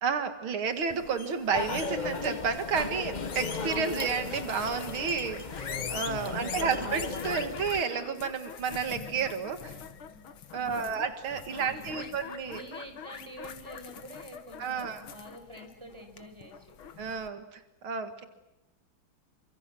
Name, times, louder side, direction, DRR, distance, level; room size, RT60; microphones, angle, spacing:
voice 1, 0.0-9.7 10.5-12.6 14.6-15.0 17.0-18.2, right 6 dB, 90° right, 9 dB, 2.7 m, -31 dB
sound 1, 0.8-17.3, left 8 dB, 85° left, 2.3 m, -44 dB
sound 2, 1.5-7.8, left 4 dB, 30° left, 0.8 m, -36 dB
voice 2, 6.1-6.8 9.7-10.2 10.5-10.9 11.5-12.1 12.4-16.7, right 1 dB, 15° right, 5 dB, 5.8 m, -48 dB
29.5 x 25.0 x 7.6 m, 0.92 s
omnidirectional pair, 2.2 m